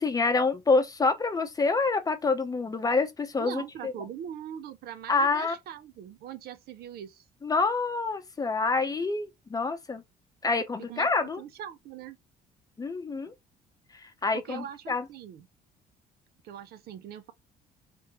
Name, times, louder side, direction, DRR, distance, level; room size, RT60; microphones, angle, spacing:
voice 1, 0.0-3.9 5.1-5.5 7.4-10.0 10.4-11.4 12.8-13.3 13.9-15.0, left 4 dB, 20° left, 0.7 m, -27 dB
voice 2, 3.4-7.3 10.8-12.2 14.3-15.5 16.4-17.3, right 9 dB, 65° right, 0.6 m, -42 dB
3.4 x 3.1 x 2.9 m
cardioid pair, 110°, 17 cm